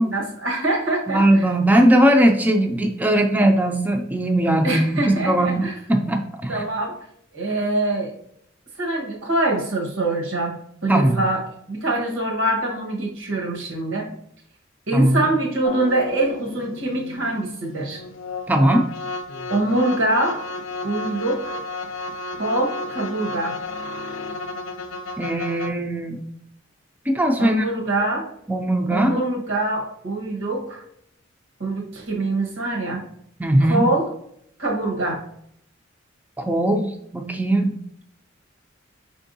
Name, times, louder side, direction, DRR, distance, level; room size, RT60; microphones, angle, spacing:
voice 1, 0.0-1.5 4.6-5.7 6.5-7.0 7.3-8.1 8.8-14.1 14.9-18.0 19.5-20.4 20.8-21.6 22.4-23.6 27.4-28.3 28.9-30.8 31.6-33.0 33.7-34.1 34.6-35.2, right 2 dB, 90° right, 0 dB, 1.3 m, -24 dB
voice 2, 1.1-6.6 10.9-11.2 14.9-15.2 18.5-18.9 25.2-26.2 27.1-27.7 28.5-29.2 33.4-33.9 36.4-37.8, right 1 dB, 10° right, 4 dB, 0.4 m, -19 dB
sound 1, 15.6-25.7, left 2 dB, 90° left, 0.5 m, -33 dB
5.3 x 3.5 x 2.6 m, 0.70 s
head